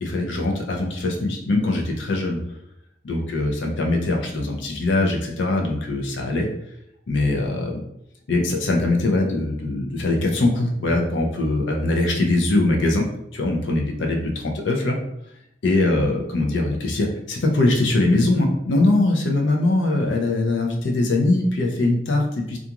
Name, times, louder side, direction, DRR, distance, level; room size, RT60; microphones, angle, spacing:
voice 1, 0.0-2.4 3.0-6.5 7.1-7.8 8.3-13.1 13.3-15.0 15.6-22.6, left 2 dB, 80° left, 1 dB, 0.5 m, -22 dB
2.4 x 2.3 x 2.8 m, 0.80 s
head